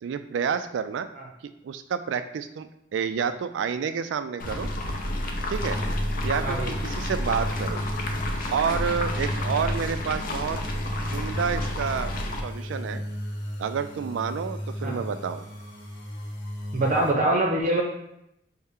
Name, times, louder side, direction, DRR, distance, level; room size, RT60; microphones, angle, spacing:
voice 1, 0.0-1.1 1.6-4.7 5.5-5.8 6.2-7.8 8.5-10.6 11.1-12.1 12.4-13.0 13.6-15.5, right 6 dB, 90° right, 10 dB, 0.3 m, -29 dB
sound 1, 4.4-12.4, left 1 dB, 50° left, 0.5 m, -30 dB
sound 2, 5.6-17.1, equal, 75° left, 1.0 m, -35 dB
voice 2, 6.4-6.7 14.8-15.0 16.7-17.8, right 2 dB, 45° right, 0 dB, 0.6 m, -24 dB
5.4 x 2.1 x 3.6 m, 0.80 s
head